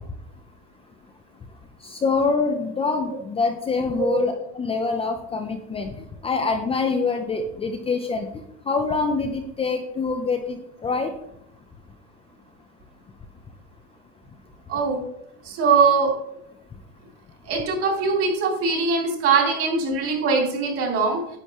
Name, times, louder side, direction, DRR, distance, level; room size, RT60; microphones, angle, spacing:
voice 1, 1.9-5.9 6.2-8.3 8.7-11.1, left 4 dB, 15° left, 4 dB, 0.7 m, -25 dB
voice 2, 14.7-15.0 15.4-16.1 17.4-21.4, right 4 dB, 40° right, 0 dB, 3.4 m, -21 dB
10.0 x 8.3 x 3.1 m, 0.79 s
supercardioid pair, 140°, 34 cm